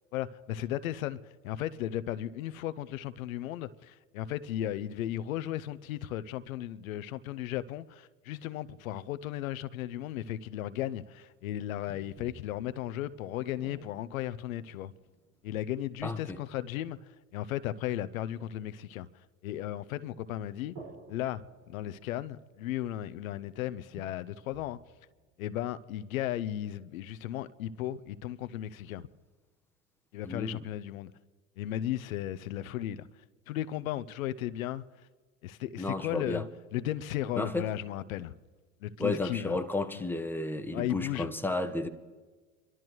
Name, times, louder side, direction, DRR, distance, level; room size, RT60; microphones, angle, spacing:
voice 1, 0.1-1.2 1.4-14.9 15.4-17.0 17.3-19.1 19.4-20.8 21.1-21.4 21.7-24.8 25.4-29.1 30.1-31.1 31.6-33.1 33.5-34.8 35.4-36.4 36.7-38.3 38.8-39.6 39.9-40.0 40.7-41.3, left 12 dB, 80° left, 0.7 m, -35 dB
sound 1, 11.9-16.5 20.7-23.1 23.5-23.6 24.0-26.3, right 3 dB, 55° right, 5.5 m, -54 dB
voice 2, 16.0-16.4 30.2-30.6 35.8-36.5 37.4-37.7 39.0-41.9, left 2 dB, 5° left, 1.2 m, -32 dB
26.5 x 12.5 x 3.1 m
hypercardioid pair, 85°, 41 cm